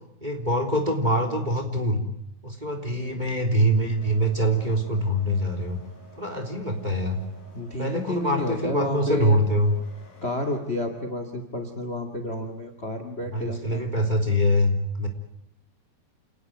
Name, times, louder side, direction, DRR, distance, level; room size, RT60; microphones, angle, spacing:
voice 1, 0.2-2.0 2.4-5.8 6.2-7.2 7.8-9.7 13.2-15.1, equal, 10° right, 5 dB, 2.7 m, -24 dB
voice 2, 2.9-3.3 7.5-9.4 10.2-13.8, left 1 dB, 30° left, 8 dB, 1.1 m, -30 dB
sound 1, 3.9-10.6, right 1 dB, 50° left, 7.9 m, -51 dB
28.5 x 19.0 x 9.3 m, 0.78 s
omnidirectional pair, 5.2 m